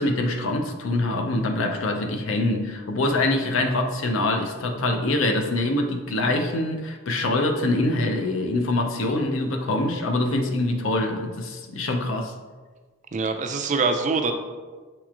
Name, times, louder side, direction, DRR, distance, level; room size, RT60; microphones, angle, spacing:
voice 1, 0.0-12.3, left 2 dB, 70° left, 0.5 m, -24 dB
voice 2, 13.1-14.3, right 4 dB, 35° right, 0.3 m, -24 dB
7.1 x 2.9 x 2.4 m
head